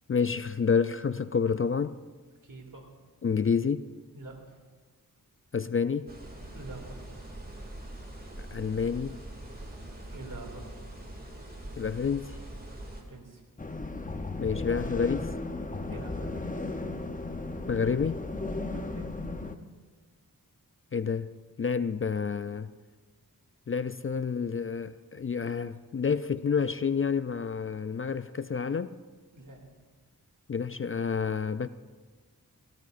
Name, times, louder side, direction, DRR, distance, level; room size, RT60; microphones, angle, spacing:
voice 1, 0.1-2.0 3.2-3.9 5.5-6.1 8.4-9.2 11.8-12.4 14.4-15.3 17.7-18.2 20.9-21.3 21.6-22.7 23.7-28.9 30.5-31.7, left 6 dB, 35° left, 0.4 m, -29 dB
voice 2, 2.4-2.9 4.1-4.6 6.5-7.0 9.5-10.7 13.0-13.4 15.9-16.8 18.7-19.2 29.3-29.7, right 2 dB, 60° right, 2.7 m, -46 dB
sound 1, 6.1-13.0, right 1 dB, 25° right, 2.5 m, -43 dB
sound 2, 13.6-19.5, left 2 dB, 20° left, 0.8 m, -35 dB
17.5 x 17.0 x 2.6 m
wide cardioid pair, 55°, 37 cm